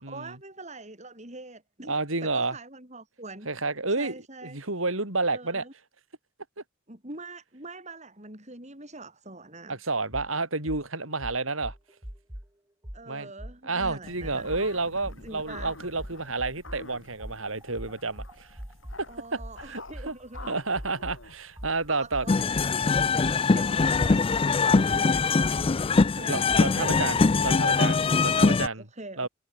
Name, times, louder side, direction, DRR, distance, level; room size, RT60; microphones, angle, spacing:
voice 1, 0.1-3.5 4.0-4.6 5.3-5.7 6.9-9.8 12.9-14.5 15.2-15.7 19.1-20.5 21.9-23.1 23.5-27.2 27.5-28.0 28.6-29.3, right 3 dB, 35° right, 7.4 m, -44 dB
voice 2, 1.9-2.6 3.5-4.1 4.4-5.6 9.7-11.7 13.1-13.3 13.6-18.5 19.0-20.1 20.5-22.3 26.3-28.9 29.2-29.3, right 3 dB, 90° right, 5.7 m, -30 dB
sound 1, 10.1-10.3 10.7-10.8 11.2-12.5 12.8-13.0 13.4-14.7 15.0-15.2 15.6-16.8 17.2-21.2 21.6-27.6, equal, 15° right, 2.4 m, -41 dB
sound 2, 14.0-23.4, left 2 dB, 75° left, 5.0 m, -48 dB
sound 3, 22.3-28.7, left 4 dB, 25° left, 0.4 m, -22 dB
head